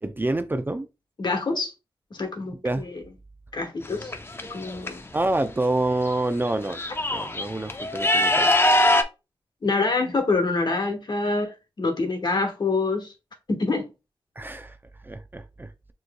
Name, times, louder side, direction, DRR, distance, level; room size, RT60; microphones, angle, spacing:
voice 1, 0.0-0.9 2.5-2.9 5.1-6.8 7.1-8.7 14.4-14.8 15.0-15.7, right 2 dB, 20° right, 0.5 m, -27 dB
voice 2, 1.2-1.7 2.1-2.9 3.5-4.1 4.5-5.0 9.6-13.1 13.5-13.8, left 3 dB, 55° left, 1.3 m, -26 dB
sound 1, 3.8-4.9 6.1-6.2 6.5-9.0, left 1 dB, 25° left, 0.6 m, -22 dB
6.4 x 3.1 x 2.2 m
cardioid pair, 70°, 9 cm